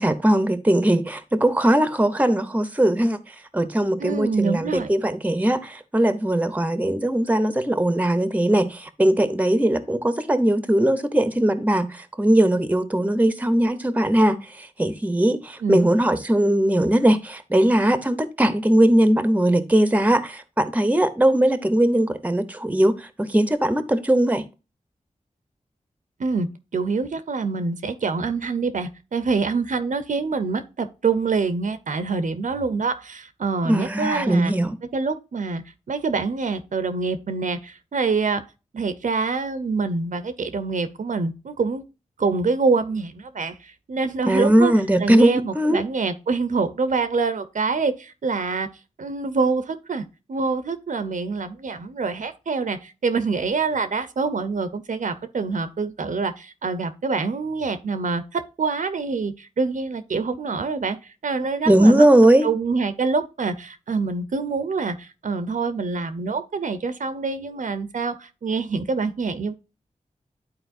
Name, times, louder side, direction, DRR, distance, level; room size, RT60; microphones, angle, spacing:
voice 1, 0.0-3.2 3.5-24.4 33.6-34.8 44.2-45.8 61.7-62.5, right 1 dB, 10° right, 0.8 m, -20 dB
voice 2, 4.0-4.9 15.6-15.8 26.2-26.5 26.7-34.5 34.9-35.6 35.9-38.4 38.7-41.8 42.2-44.7 45.0-48.7 49.0-61.0 61.2-62.1 62.4-69.5, right 4 dB, 70° right, 0.7 m, -25 dB
11.5 x 4.3 x 2.6 m
wide cardioid pair, 70°, 14 cm